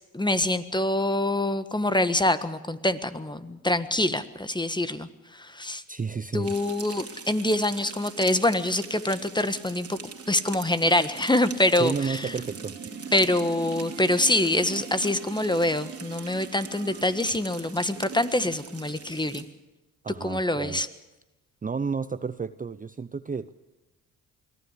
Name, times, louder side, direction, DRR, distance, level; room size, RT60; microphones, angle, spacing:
voice 1, 0.1-5.8 6.3-10.0 10.3-12.3 13.1-19.4 20.2-20.9, left 1 dB, 10° left, 12 dB, 1.5 m, -25 dB
voice 2, 5.9-6.6 11.7-12.8 20.0-20.9 21.6-23.5, right 5 dB, 20° right, 13 dB, 0.7 m, -31 dB
sound 1, 6.4-19.4, right 5 dB, 40° right, 2.7 m, -41 dB
sound 2, 11.1-19.5, right 10 dB, 85° right, 2.7 m, -49 dB
23.0 x 15.0 x 8.4 m, 1.1 s
supercardioid pair, 55°, 38 cm